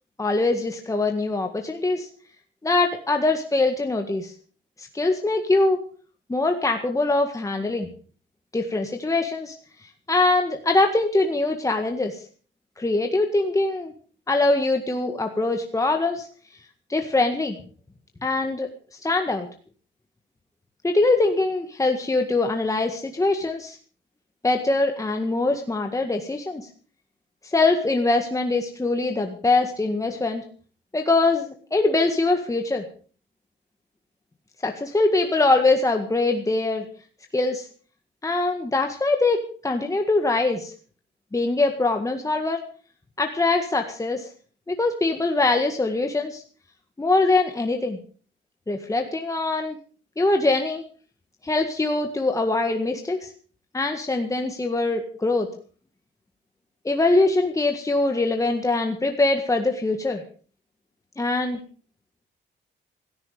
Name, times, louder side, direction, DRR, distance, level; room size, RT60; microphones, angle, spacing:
voice 1, 0.2-2.1 2.6-4.3 4.8-5.8 6.3-7.9 8.5-9.6 10.1-12.2 12.8-13.9 14.3-16.3 16.9-17.6 18.2-19.5 20.8-23.8 24.4-26.7 27.4-30.4 30.9-32.8 34.6-36.9 37.3-37.7 38.2-40.7 41.3-42.6 43.2-44.3 44.7-46.4 47.0-48.0 48.7-49.8 50.2-50.8 51.4-53.3 53.7-55.5 56.9-60.2 61.2-61.6, left 2 dB, 15° left, 4 dB, 1.8 m, -23 dB
16.0 x 14.0 x 5.1 m, 0.41 s
cardioid pair, 90°, 20 cm